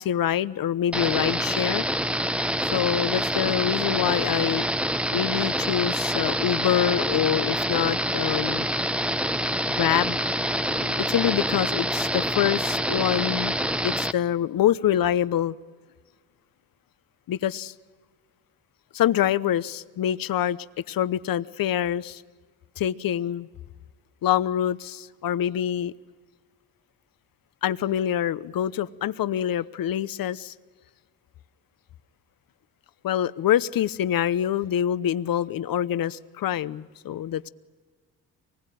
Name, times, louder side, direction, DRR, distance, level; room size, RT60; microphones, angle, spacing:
voice 1, 0.0-1.8 2.7-4.7 5.1-8.7 9.7-10.2 10.7-13.6 13.8-15.5 17.3-17.7 18.9-20.6 20.9-22.2 22.8-23.5 24.2-25.9 27.6-30.5 33.0-37.5, left 10 dB, 60° left, 0.9 m, -25 dB
sound 1, 0.9-14.1, equal, 5° right, 0.8 m, -26 dB
24.5 x 20.0 x 9.3 m
supercardioid pair, 65°, 39 cm